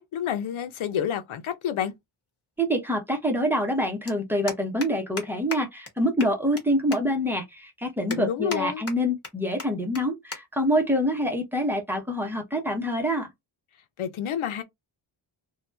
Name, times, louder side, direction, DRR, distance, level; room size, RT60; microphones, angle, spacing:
voice 1, 0.0-1.9 8.1-8.8 14.0-14.6, left 9 dB, 90° left, 0.8 m, -29 dB
voice 2, 2.6-13.3, equal, 5° right, 0.8 m, -26 dB
sound 1, 4.1-4.2 4.5-4.9 5.2-5.3 5.5-5.6 5.9-6.0 6.2-6.6 6.9-7.0 7.5-7.6 8.1-8.6 8.9-9.3 9.6-9.7 9.9-10.0 10.3-10.4 10.7-11.0 11.7-12.0, left 4 dB, 30° left, 1.1 m, -35 dB
2.8 x 2.3 x 3.2 m
wide cardioid pair, 165°, 47 cm